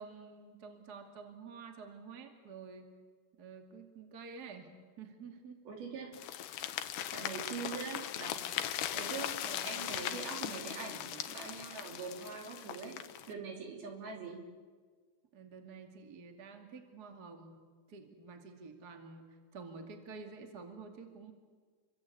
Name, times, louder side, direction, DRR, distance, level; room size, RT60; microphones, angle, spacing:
voice 1, 0.0-2.9 3.4-4.7 5.0-5.6 9.4-10.3 15.3-21.3, right 5 dB, 30° right, 4 dB, 2.0 m, -50 dB
voice 2, 5.7-6.1 7.1-8.4 8.9-9.3 9.6-13.0 13.3-14.4, right 5 dB, 60° right, 1 dB, 5.1 m, -43 dB
sound 1, 6.1-13.3, left 11 dB, 70° left, 2.8 m, -39 dB
29.0 x 23.5 x 8.5 m, 1.5 s
omnidirectional pair, 4.8 m